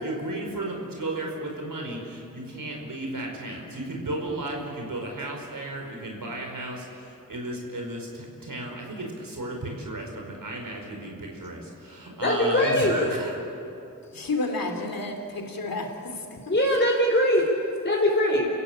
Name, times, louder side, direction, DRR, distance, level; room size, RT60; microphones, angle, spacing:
voice 1, 0.0-13.3, right 1 dB, 75° right, 0 dB, 5.0 m, -34 dB
voice 2, 12.2-13.1 16.5-17.4 17.8-18.5, left 1 dB, 35° left, -2 dB, 4.9 m, -21 dB
voice 3, 14.0-16.5, left 2 dB, 90° left, 4 dB, 2.9 m, -31 dB
29.5 x 15.0 x 8.8 m, 2.6 s
cardioid pair, 45°, 34 cm